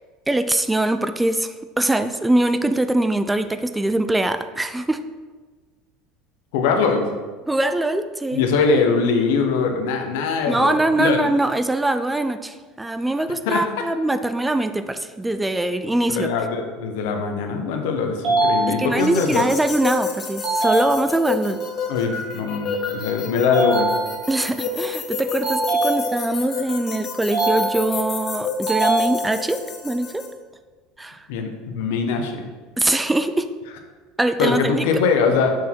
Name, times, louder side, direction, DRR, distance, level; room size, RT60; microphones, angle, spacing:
voice 1, 0.3-5.0 7.5-8.4 10.5-16.3 18.7-21.6 24.3-30.2 31.0-31.3 32.8-33.5 34.2-34.9, right 1 dB, 10° right, 10 dB, 0.3 m, -22 dB
voice 2, 6.5-7.1 8.3-11.2 13.5-13.6 16.1-19.5 21.9-23.9 31.3-32.4 34.4-35.5, left 5 dB, 80° left, 4 dB, 0.8 m, -22 dB
sound 1, 18.2-19.3 20.4-21.4 23.5-24.5 25.4-26.5 27.3-28.2 28.7-29.7, right 2 dB, 65° right, 1.8 m, -23 dB
sound 2, 19.0-30.3, left 5 dB, 45° left, 1.1 m, -30 dB
6.3 x 3.5 x 4.5 m, 1.4 s
supercardioid pair, 95°, 0 cm